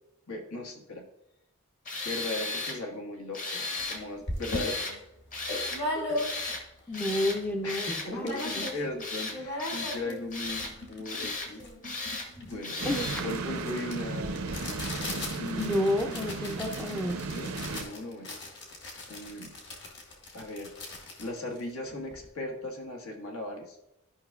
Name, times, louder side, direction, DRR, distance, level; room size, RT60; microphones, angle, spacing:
voice 1, 0.3-1.0 2.0-4.8 7.6-11.6 12.4-12.8 13.2-14.5 15.4-15.8 17.3-18.3 19.1-19.5 20.3-20.7 21.2-23.8, left 2 dB, 80° left, 2 dB, 1.4 m, -38 dB
Tools, 1.8-2.8 3.3-4.0 4.4-4.9 5.3-5.8 6.1-6.6 6.9-7.4 7.7-8.1 8.4-8.7 9.0-10.0 10.3-10.7 11.0-11.5 11.8-12.3 12.6-13.2, left 3 dB, 35° left, 1.0 m, -35 dB
sound 1, 3.8-3.9 4.3-6.7 7.1-7.2 7.3-7.8 8.1-8.9 9.2-22.3, left 1 dB, 50° left, 1.8 m, -38 dB
voice 2, 6.9-8.7 12.8-13.3 15.6-17.2, left 1 dB, 5° left, 4 dB, 0.4 m, -30 dB
sound 2, 12.8-17.8, right 3 dB, 75° right, 0.6 m, -35 dB
12.5 x 5.6 x 2.3 m, 0.86 s
head